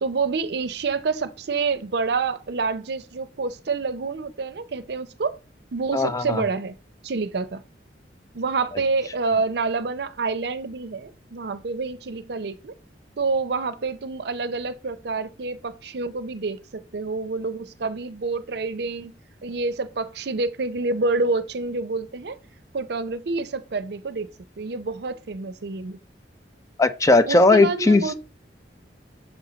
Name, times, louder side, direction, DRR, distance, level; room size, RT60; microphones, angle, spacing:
voice 1, 0.0-5.4 5.7-6.8 7.0-7.6 8.3-12.7 13.2-22.4 22.7-24.3 24.6-26.0 27.3-28.1, right 4 dB, 65° right, 0.6 m, -27 dB
voice 2, 5.9-6.4 26.8-28.0, left 2 dB, 20° left, 0.4 m, -17 dB
7.0 x 4.3 x 3.9 m
head